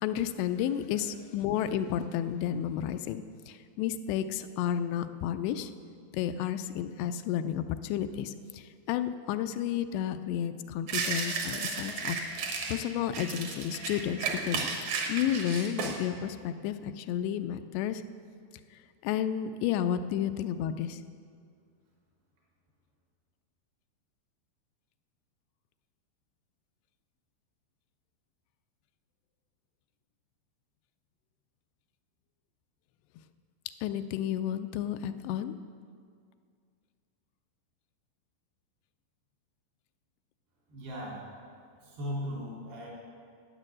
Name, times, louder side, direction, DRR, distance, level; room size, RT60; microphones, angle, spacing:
voice 1, 0.0-5.7 6.1-14.6 14.9-18.0 19.0-21.0 33.8-35.6, left 10 dB, 85° left, 10 dB, 2.7 m, -32 dB
sound 1, 10.9-12.8 13.1-16.0, right 5 dB, 60° right, 2.0 m, -33 dB
voice 2, 40.7-41.3 41.8-42.9, equal, 75° right, -6 dB, 5.5 m, -37 dB
11.0 x 9.8 x 7.6 m, 2.2 s
omnidirectional pair, 4.9 m